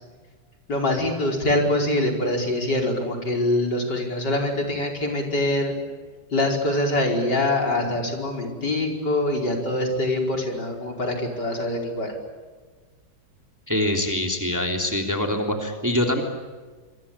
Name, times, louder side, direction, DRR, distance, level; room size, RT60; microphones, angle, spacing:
voice 1, 0.7-5.8 6.3-12.1, left 1 dB, 55° left, 1 dB, 5.6 m, -24 dB
voice 2, 13.7-16.2, left 1 dB, 10° right, 3 dB, 3.1 m, -24 dB
27.5 x 23.0 x 8.6 m, 1.4 s
omnidirectional pair, 2.1 m